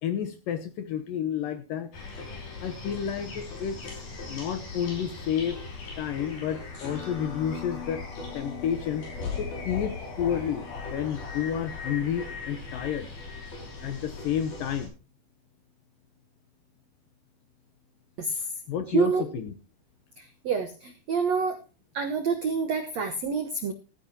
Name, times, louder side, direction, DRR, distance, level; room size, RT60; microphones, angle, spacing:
voice 1, 0.0-1.9 2.6-4.0 4.3-5.6 6.0-8.0 8.3-9.1 9.4-13.1 13.8-14.9 18.3-19.5, left 9 dB, 70° left, 10 dB, 2.2 m, -30 dB
sound 1, 1.9-14.9, left 4 dB, 55° left, 6.8 m, -38 dB
voice 2, 18.9-19.2 20.4-21.6 21.9-23.7, right 5 dB, 80° right, 7 dB, 1.5 m, -27 dB
15.5 x 14.5 x 2.8 m, 0.32 s
omnidirectional pair, 5.0 m